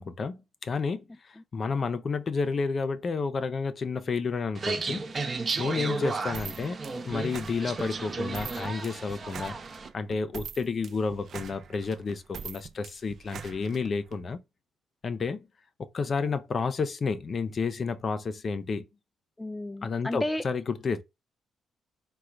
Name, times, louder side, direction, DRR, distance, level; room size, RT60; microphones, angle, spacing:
voice 1, 0.0-5.0 5.6-6.8 7.0-9.6 9.9-14.4 15.0-15.5 15.8-18.9 19.8-21.0, left 4 dB, 45° left, 0.6 m, -31 dB
sound 1, 4.5-9.9, right 3 dB, 35° right, 0.8 m, -33 dB
voice 2, 5.6-6.1 19.4-20.4, left 1 dB, 10° left, 0.3 m, -33 dB
sound 2, 6.3-14.2, right 7 dB, 60° right, 0.4 m, -43 dB
3.8 x 2.3 x 4.5 m
cardioid pair, 90°, 0 cm